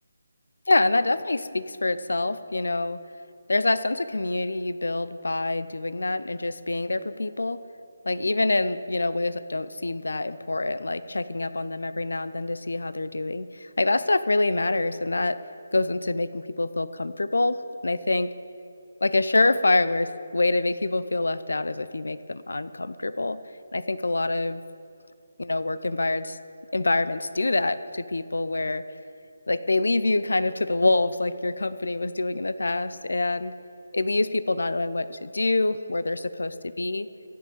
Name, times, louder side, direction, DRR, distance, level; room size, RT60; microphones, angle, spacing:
voice 1, 0.7-3.0 3.5-7.6 8.1-15.4 15.7-18.3 19.0-23.4 23.7-24.6 25.4-26.4 26.7-28.8 29.5-33.5 33.9-37.1, left 2 dB, 70° left, 15 dB, 0.7 m, -26 dB
26.5 x 9.6 x 5.3 m, 2.6 s
figure-of-eight pair, 150°, 0 cm